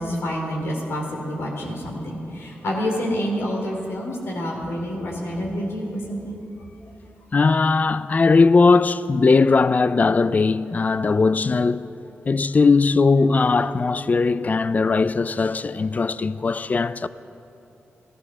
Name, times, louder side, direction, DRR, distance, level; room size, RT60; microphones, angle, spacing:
voice 1, 0.0-6.4, equal, 80° left, 2.7 m, -28 dB
voice 2, 7.3-11.9 12.3-17.1, left 4 dB, 40° left, 0.4 m, -19 dB
14.5 x 13.5 x 6.1 m
cardioid pair, 80°, 4 cm